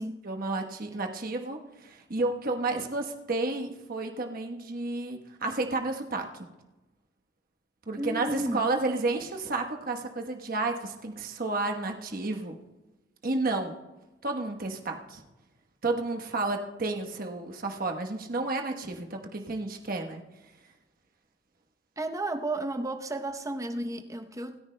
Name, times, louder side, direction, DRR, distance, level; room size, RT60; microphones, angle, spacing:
voice 1, 0.2-6.3 7.9-12.6 13.2-13.7 14.2-15.2 15.8-20.2, right 2 dB, 50° right, 4 dB, 1.1 m, -31 dB
voice 2, 8.0-8.7 22.0-24.6, right 2 dB, 15° right, 5 dB, 0.8 m, -33 dB
26.0 x 10.0 x 2.2 m, 1.1 s
head